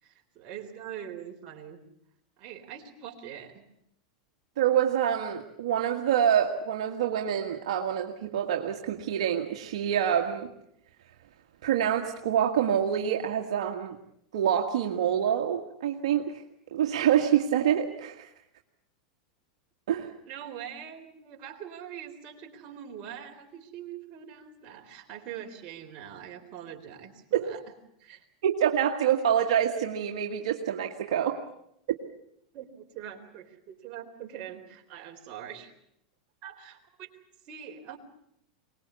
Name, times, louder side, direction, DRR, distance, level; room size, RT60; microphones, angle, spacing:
voice 1, 0.0-1.8 2.4-3.7 20.3-27.6 28.0-28.2 32.5-35.7 36.4-37.1 37.4-38.0, right 9 dB, 45° right, 3 dB, 3.9 m, -43 dB
voice 2, 4.6-10.5 11.6-14.0 14.3-16.4 16.7-18.3 19.9-20.1 27.3-27.5 28.4-31.4, right 9 dB, 75° right, 2 dB, 1.7 m, -26 dB
23.5 x 20.0 x 8.3 m, 0.73 s
supercardioid pair, 120°, 3 cm